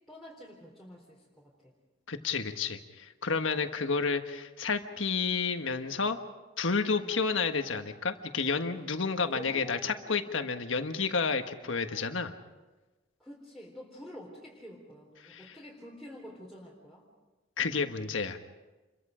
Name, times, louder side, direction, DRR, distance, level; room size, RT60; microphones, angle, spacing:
voice 1, 0.1-1.7 7.0-7.2 8.9-10.3 13.2-17.0, equal, ahead, -4 dB, 3.8 m, -48 dB
voice 2, 2.1-6.2 6.6-12.3 15.2-15.4 17.6-18.4, left 5 dB, 75° left, 7 dB, 1.5 m, -30 dB
28.5 x 23.0 x 5.1 m, 1.2 s
head